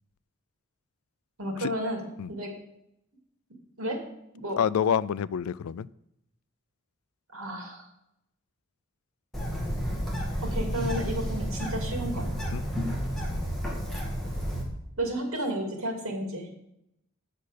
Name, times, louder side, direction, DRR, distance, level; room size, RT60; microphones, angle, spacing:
voice 1, 1.4-2.0 2.3-2.5 3.8-4.0 4.3-4.6 7.3-7.9 10.4-12.3 15.0-16.5, right 1 dB, 75° right, 2 dB, 2.5 m, -32 dB
voice 2, 4.6-5.9 12.5-12.6, left 8 dB, 85° left, 19 dB, 0.4 m, -27 dB
Bird, 9.3-14.6, equal, ahead, 2.0 m, -31 dB
8.5 x 6.6 x 6.5 m, 0.80 s
head